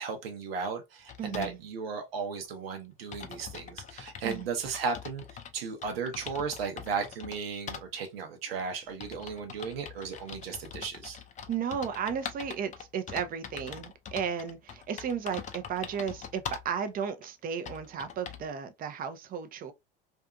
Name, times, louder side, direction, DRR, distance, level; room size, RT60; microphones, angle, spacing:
voice 1, 0.0-5.3 5.5-11.2, right 5 dB, 80° right, 0.8 m, -35 dB
sound 1, 1.1-1.6 2.4-2.5 2.8-2.9 3.1-5.5 5.8-7.4 7.7-7.8 8.6-16.7 17.2-17.3 17.6-18.5, left 7 dB, 25° left, 0.5 m, -43 dB
voice 2, 1.2-1.6 4.2-4.5 11.5-19.7, right 7 dB, 30° right, 0.5 m, -34 dB
2.6 x 2.5 x 2.3 m
hypercardioid pair, 85°, 29 cm